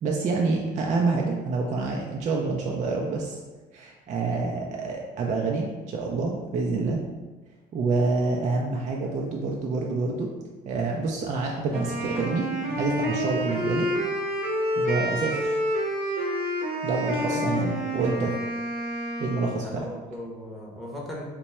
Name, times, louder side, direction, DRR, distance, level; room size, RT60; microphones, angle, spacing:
voice 1, 0.0-3.4 3.7-7.0 7.7-10.3 10.7-13.9 14.8-15.6 16.8-18.3 19.2-19.9, right 3 dB, 45° right, -1 dB, 0.4 m, -27 dB
Wind instrument woodwind instrument, 11.7-19.6, equal, 65° right, 0.8 m, -28 dB
voice 2, 17.2-18.2 19.6-21.2, left 1 dB, ahead, -4 dB, 0.7 m, -38 dB
3.0 x 2.2 x 4.2 m, 1.2 s
cardioid pair, 110°, 17 cm